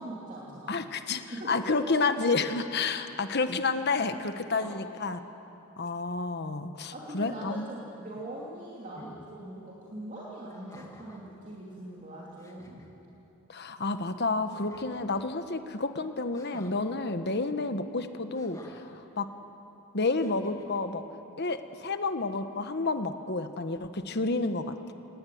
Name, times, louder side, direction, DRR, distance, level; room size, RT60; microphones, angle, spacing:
voice 1, 0.0-0.8 1.3-1.5 1.8-2.1 4.5-4.8 6.9-12.8, right 1 dB, 35° right, -5 dB, 2.9 m, -42 dB
voice 2, 0.7-1.2 1.5-5.2 5.8-7.7 13.5-19.3 19.9-21.0 21.4-24.9, left 3 dB, 50° left, 8 dB, 1.2 m, -30 dB
sound 1, 8.9-9.2 10.5-11.3 12.0-12.1 12.4-12.9 14.5-15.3 16.3-16.8 18.3-19.0 20.1-20.8, left 1 dB, 15° left, 2.1 m, -51 dB
23.0 x 19.5 x 9.4 m, 3.0 s
head